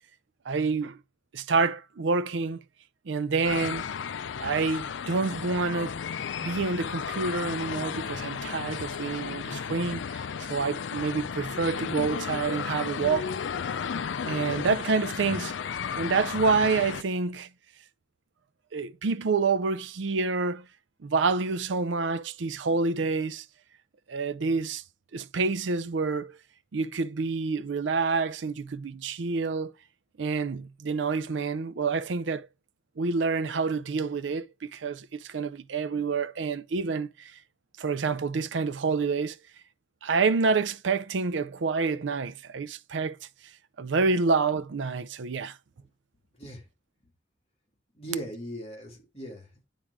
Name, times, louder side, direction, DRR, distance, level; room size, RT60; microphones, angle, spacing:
voice 1, 0.5-1.0 1.3-2.6 3.1-3.8 4.4-6.0 6.4-10.2 10.5-13.4 14.2-15.5 15.9-17.5 18.7-20.7 21.0-23.4 24.1-24.8 25.1-26.4 26.7-29.7 30.2-32.5 33.0-37.3 37.8-39.4 40.0-43.2 43.8-45.6, right 4 dB, 80° right, 0.5 m, -28 dB
sound 1, 3.4-17.0, left 7 dB, 80° left, 0.4 m, -34 dB
voice 2, 47.9-49.7, right 1 dB, 35° left, 3.1 m, -39 dB
10.0 x 3.7 x 4.7 m
head